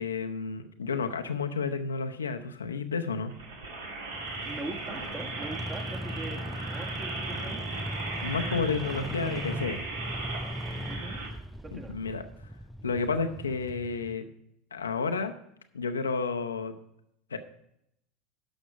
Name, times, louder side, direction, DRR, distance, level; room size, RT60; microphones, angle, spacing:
voice 1, 0.0-3.3 8.2-9.8 11.7-12.2 12.8-14.2 14.7-15.3 15.7-16.7 17.3-17.4, left 4 dB, 75° left, 6 dB, 0.7 m, -31 dB
sound 1, 3.3-11.3, right 3 dB, 65° right, 1.8 m, -37 dB
sound 2, 4.1-14.1, equal, ahead, 0.3 m, -39 dB
voice 2, 4.4-6.4 6.6-7.6 10.9-11.2 11.6-11.9, right 2 dB, 20° right, 4 dB, 1.3 m, -41 dB
11.5 x 6.2 x 4.7 m, 0.76 s
figure-of-eight pair, 80°, 0 cm